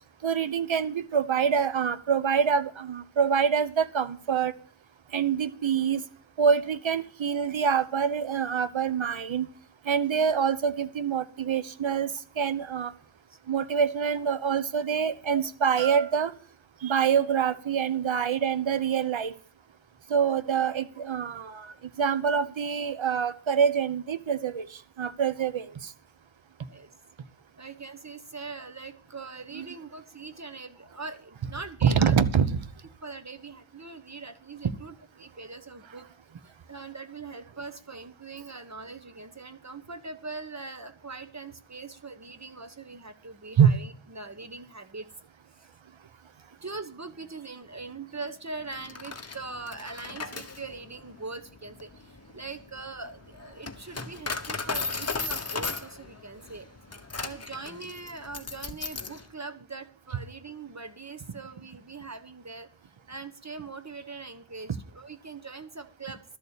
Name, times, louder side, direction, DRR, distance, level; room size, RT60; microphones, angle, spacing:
voice 1, 0.2-4.5 5.1-6.0 6.4-9.5 9.8-12.9 13.5-16.3 16.8-19.3 20.1-25.9 29.6-29.7 31.8-32.5 43.6-43.7, right 7 dB, 65° right, 14 dB, 1.1 m, -25 dB
voice 2, 27.6-32.2 33.0-36.1 36.4-45.1 45.6-45.7 46.6-56.7 57.2-62.7 63.1-66.2, right 3 dB, 35° right, 8 dB, 1.2 m, -41 dB
Coin (dropping), 48.7-59.2, left 4 dB, 30° left, 1.2 m, -36 dB
12.5 x 6.9 x 8.2 m, 0.43 s
wide cardioid pair, 85°, 50 cm